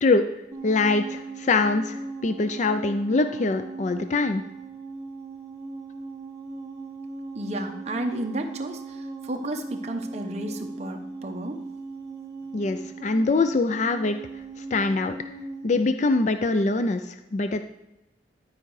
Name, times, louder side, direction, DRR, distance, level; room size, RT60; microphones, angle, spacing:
sound 1, 0.5-15.9, right 3 dB, 20° right, 1.3 m, -38 dB
voice 1, 0.6-4.4 12.5-14.2 14.6-15.1 15.6-17.6, left 3 dB, 40° left, 9 dB, 0.4 m, -23 dB
voice 2, 7.3-11.6, right 1 dB, 40° right, 4 dB, 0.9 m, -32 dB
11.5 x 4.9 x 4.7 m, 0.94 s
head